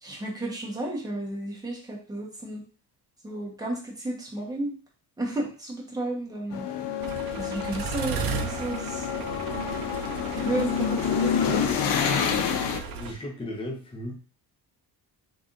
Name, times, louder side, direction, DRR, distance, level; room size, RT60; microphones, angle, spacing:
voice 1, 0.0-2.6 3.2-4.7 5.2-6.7 7.4-9.6 10.3-11.6 12.0-12.5, right 1 dB, 10° right, -3 dB, 1.0 m, -33 dB
sound 1, 6.5-12.8, left 7 dB, 75° left, 0.6 m, -28 dB
sound 2, 7.0-13.1, right 5 dB, 60° right, 0.5 m, -35 dB
voice 2, 12.9-14.1, left 1 dB, 15° left, 0 dB, 0.8 m, -36 dB
3.9 x 3.4 x 2.5 m, 0.38 s
cardioid pair, 145°, 41 cm